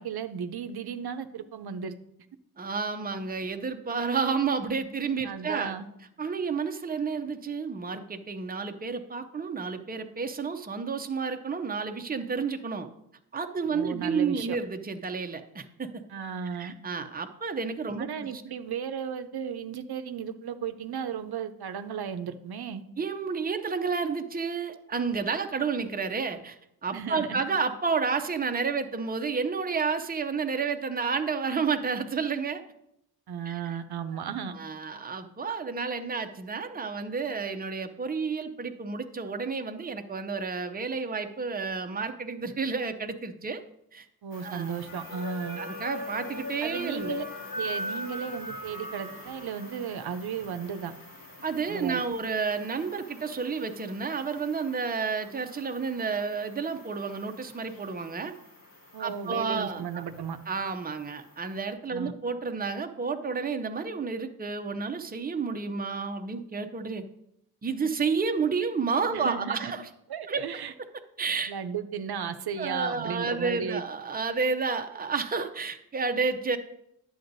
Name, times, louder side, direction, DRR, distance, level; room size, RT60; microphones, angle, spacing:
voice 1, 0.0-2.0 5.2-5.9 13.7-14.6 16.1-16.7 18.0-22.8 26.9-27.4 33.3-34.6 44.2-45.6 46.6-47.2 47.5-50.9 51.7-52.0 58.9-60.4 61.9-62.1 69.1-69.7 70.1-70.7 71.5-73.8, right 7 dB, 80° right, 8 dB, 0.6 m, -35 dB
voice 2, 2.6-5.8 6.2-12.9 13.3-16.0 16.6-18.1 23.0-32.6 33.5-33.6 34.5-43.6 43.9-44.0 44.4-44.7 45.6-47.2 51.4-58.3 59.0-60.0 60.5-67.0 67.6-69.9 70.3-70.4 71.2-71.5 72.6-76.6, right 5 dB, 25° right, 7 dB, 0.6 m, -30 dB
sound 1, 44.3-61.7, left 1 dB, 60° left, 2.1 m, -42 dB
11.0 x 7.8 x 2.6 m, 0.78 s
wide cardioid pair, 90°, 37 cm